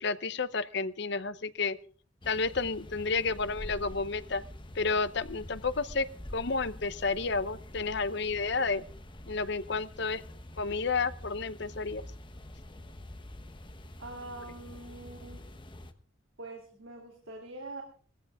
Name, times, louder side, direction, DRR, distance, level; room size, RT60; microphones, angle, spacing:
voice 1, 0.0-1.8 2.3-4.4 4.7-6.1 6.3-8.8 9.3-10.2 10.6-12.0, left 4 dB, 55° left, 14 dB, 0.8 m, -31 dB
sound 1, 2.2-15.9, left 1 dB, 25° left, 1.1 m, -46 dB
voice 2, 14.0-15.5 16.4-17.8, right 2 dB, 90° right, 1 dB, 3.3 m, -44 dB
19.5 x 15.0 x 3.6 m, 0.42 s
head